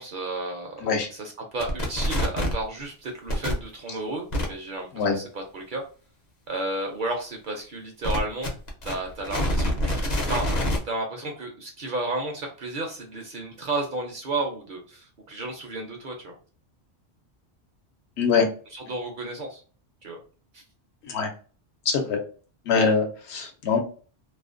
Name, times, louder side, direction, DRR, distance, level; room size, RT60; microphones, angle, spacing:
voice 1, 0.0-5.8 6.5-8.5 8.8-10.5 10.8-16.4 18.7-19.6 20.0-20.2 20.5-20.6, right 2 dB, 60° right, 2 dB, 0.6 m, -32 dB
sound 1, 1.6-2.6 3.3-3.5 4.3-4.5 8.0-10.8, left 1 dB, 45° left, 0.6 m, -25 dB
voice 2, 21.9-22.2 22.7-23.8, left 5 dB, 75° left, 4 dB, 0.9 m, -23 dB
2.4 x 2.1 x 2.4 m, 0.38 s
omnidirectional pair, 1.2 m